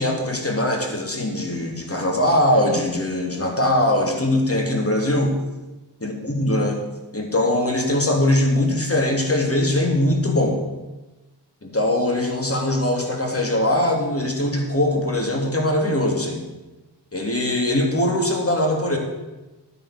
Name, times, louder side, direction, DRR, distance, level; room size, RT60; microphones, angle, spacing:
voice 1, 0.0-5.4 6.0-6.8 7.1-10.6 11.6-16.4 17.1-19.0, left 1 dB, 30° left, 2 dB, 3.1 m, -21 dB
13.0 x 9.0 x 6.6 m, 1.1 s
cardioid pair, 55°, 43 cm